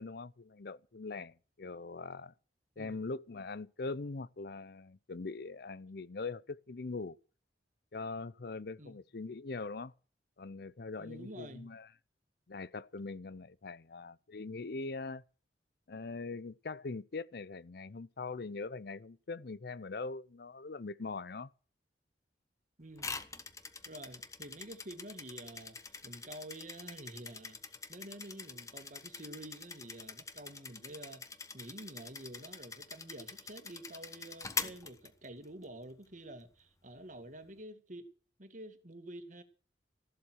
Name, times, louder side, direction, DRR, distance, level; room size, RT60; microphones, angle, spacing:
voice 1, 0.0-2.3 2.8-7.2 7.9-9.9 10.4-11.9 12.5-15.2 15.9-21.5, left 3 dB, 60° left, 0.6 m, -42 dB
voice 2, 11.0-11.7 22.8-23.2 23.9-31.3 31.5-38.1 38.4-39.4, right 1 dB, 45° right, 2.2 m, -49 dB
sound 1, 23.0-35.6, left 4 dB, 20° left, 1.2 m, -44 dB
14.5 x 12.0 x 6.4 m
head